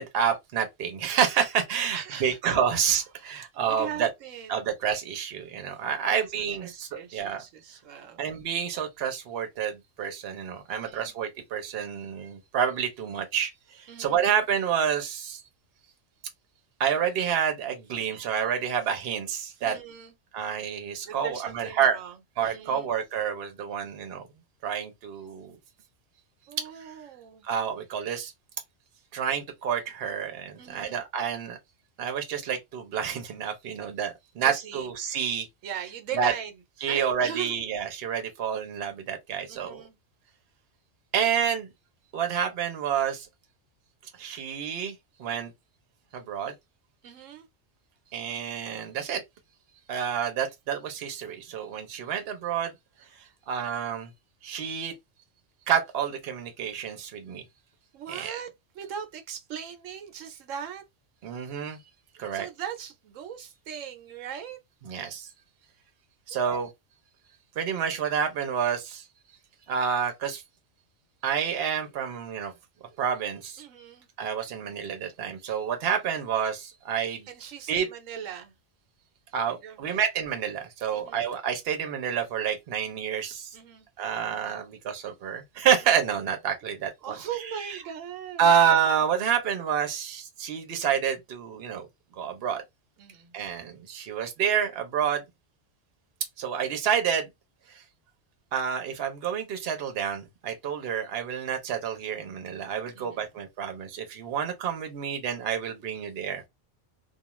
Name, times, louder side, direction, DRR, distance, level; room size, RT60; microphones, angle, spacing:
voice 1, 0.0-4.1 4.5-7.4 8.2-15.4 16.8-19.8 20.3-22.0 22.4-24.2 24.6-25.6 27.4-28.3 29.1-31.6 32.0-35.5 36.2-36.3 36.8-39.8 41.1-41.7 42.1-43.3 44.2-44.9 45.2-45.5 46.1-46.5 48.1-49.2 49.9-52.7 53.2-54.1 54.4-54.9 55.7-57.4 58.1-58.4 61.2-61.8 62.2-62.5 64.9-65.3 66.3-66.7 67.6-69.0 69.7-70.4 71.2-72.5 73.0-73.6 74.2-77.3 77.7-77.9 79.3-83.5 84.0-87.2 88.4-91.9 92.2-92.6 93.3-95.2 96.4-97.3 97.7-97.8 98.5-106.5, right 8 dB, 55° right, 0.9 m, -28 dB
voice 2, 1.9-2.4 3.7-4.7 6.0-8.3 10.7-11.1 13.9-14.3 19.6-20.1 21.0-22.9 26.5-27.5 30.6-31.0 34.4-34.9 35.6-36.5 36.9-37.6 39.5-40.0 47.0-47.5 57.9-58.5 58.7-60.8 62.3-64.6 66.3-66.6 73.6-74.1 77.3-78.5 79.5-80.0 80.9-81.3 83.5-83.9 87.0-88.5 93.0-93.4 102.9-103.4, right 8 dB, 90° right, 1.1 m, -39 dB
2.3 x 2.3 x 3.0 m
omnidirectional pair, 1.3 m